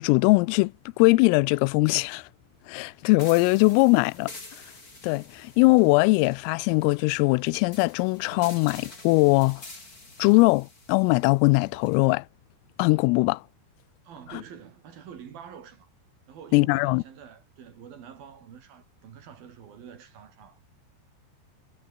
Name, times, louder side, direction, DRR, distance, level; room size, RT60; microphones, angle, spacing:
voice 1, 0.0-2.3 2.7-4.3 5.0-9.6 10.2-12.2 12.8-13.4 16.5-17.0, left 25 dB, 90° left, 3.3 m, -21 dB
sound 1, 3.2-12.1, left 2 dB, 20° left, 5.1 m, -47 dB
voice 2, 14.0-15.9 16.3-20.6, right 8 dB, 50° right, 4.0 m, -46 dB
omnidirectional pair, 5.8 m